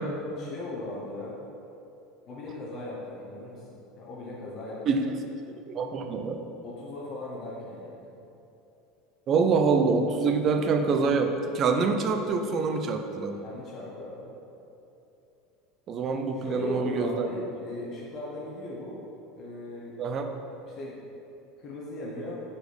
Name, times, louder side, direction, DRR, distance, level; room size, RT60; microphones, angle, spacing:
voice 1, 0.3-1.4 2.3-4.8 6.0-6.1 6.6-8.1 13.4-14.3 16.3-19.0 19.3-20.0 20.7-21.0 21.6-22.4, left 2 dB, 40° left, -4 dB, 1.0 m, -38 dB
voice 2, 5.7-6.4 9.3-13.4 15.9-17.3 20.0-20.3, right 4 dB, 35° right, 5 dB, 0.5 m, -25 dB
4.8 x 4.2 x 5.1 m, 2.8 s
supercardioid pair, 130°, 0 cm